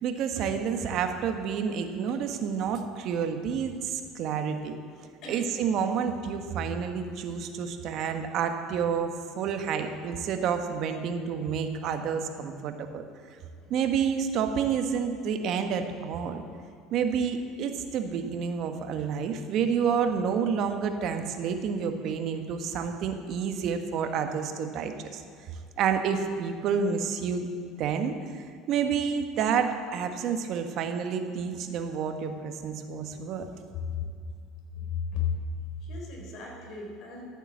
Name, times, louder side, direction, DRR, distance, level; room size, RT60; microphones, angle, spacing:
voice 1, 0.0-4.7 5.3-13.0 13.7-16.4 16.9-25.2 25.8-27.5 27.8-33.4, right 7 dB, 55° right, 6 dB, 1.3 m, -29 dB
voice 2, 5.2-5.5 13.5-13.7 33.7-34.0 34.7-35.4 35.8-37.2, left 7 dB, 55° left, 0 dB, 3.8 m, -34 dB
13.0 x 8.9 x 7.3 m, 2.3 s
cardioid pair, 130°, 0 cm